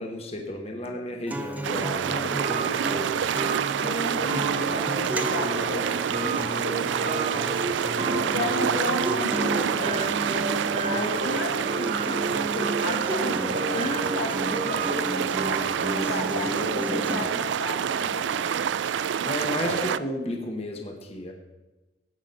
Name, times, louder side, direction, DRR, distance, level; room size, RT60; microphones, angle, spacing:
voice 1, 0.0-3.1 8.1-8.4 16.0-16.5 19.2-21.3, left 1 dB, 30° left, 2 dB, 1.3 m, -34 dB
voice 2, 0.8-1.2 3.8-7.5 7.9-10.2 10.8-18.6 19.6-20.0, left 2 dB, 65° left, 4 dB, 1.4 m, -34 dB
Acoustic guitar, 1.3-17.3, right 1 dB, 10° right, 0.5 m, -34 dB
sound 1, 1.6-20.0, right 8 dB, 75° right, 0.4 m, -28 dB
sound 2, 2.4-17.2, right 3 dB, 35° right, 0.9 m, -33 dB
17.5 x 6.0 x 5.5 m, 1.1 s
head